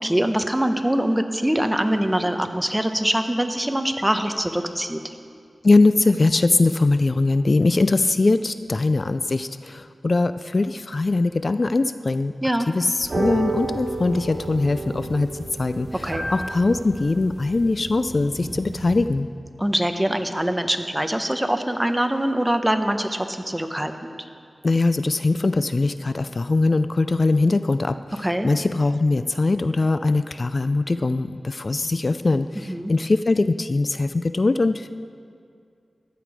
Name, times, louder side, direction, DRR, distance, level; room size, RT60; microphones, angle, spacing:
voice 1, 0.0-5.1 12.4-12.7 16.0-16.3 19.6-24.2 28.2-28.5 32.5-32.9, right 1 dB, 10° right, 6 dB, 0.8 m, -23 dB
voice 2, 5.6-12.3 12.7-15.3 15.6-19.3 24.6-34.9, left 3 dB, 45° left, 11 dB, 0.3 m, -21 dB
sound 1, 13.0-19.0, right 2 dB, 50° right, 3.0 m, -31 dB
15.0 x 10.0 x 4.8 m, 2.2 s
wide cardioid pair, 90°, 0 cm